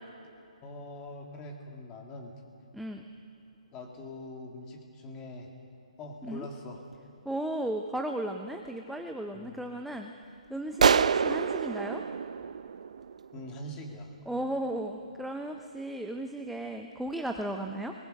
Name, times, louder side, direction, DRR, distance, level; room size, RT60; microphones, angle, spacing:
voice 1, 0.6-2.4 3.7-5.5 6.0-6.8 9.3-9.6 13.3-14.2, left 1 dB, 15° left, 2 dB, 2.0 m, -43 dB
voice 2, 2.7-3.0 6.2-6.5 7.3-10.1 10.5-12.0 14.3-17.9, right 1 dB, ahead, 4 dB, 0.5 m, -35 dB
sound 1, 10.8-13.4, right 6 dB, 65° right, 0.5 m, -26 dB
23.0 x 19.5 x 6.5 m, 2.7 s
hypercardioid pair, 165°, 4 cm